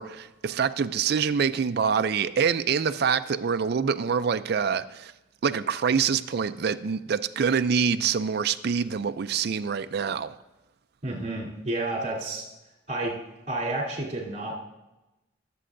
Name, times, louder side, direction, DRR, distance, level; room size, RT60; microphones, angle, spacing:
voice 1, 0.0-5.1 5.4-10.3, right 6 dB, 55° right, 0.4 m, -25 dB
voice 2, 11.0-12.5 12.9-13.1 13.5-14.5, right 2 dB, 40° right, 3.3 m, -30 dB
22.5 x 7.6 x 2.6 m
head